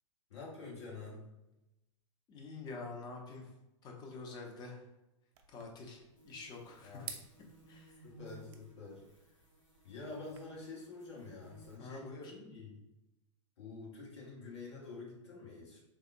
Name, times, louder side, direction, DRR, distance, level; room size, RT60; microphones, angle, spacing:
voice 1, 0.3-1.2 6.8-7.1 8.0-9.0 9.8-12.7 13.6-15.8, left 3 dB, 65° left, -4 dB, 1.1 m, -48 dB
voice 2, 2.3-3.5 3.8-4.8 5.5-6.0 6.2-7.1 7.7-8.0 11.8-12.3, left 3 dB, 25° left, 1 dB, 0.6 m, -46 dB
sound 1, 5.3-10.4, right 7 dB, 45° right, 0.4 m, -54 dB
sound 2, 6.2-11.8, right 2 dB, 85° left, 0.7 m, -59 dB
3.5 x 2.1 x 2.5 m, 0.95 s
figure-of-eight pair, 95°, 16 cm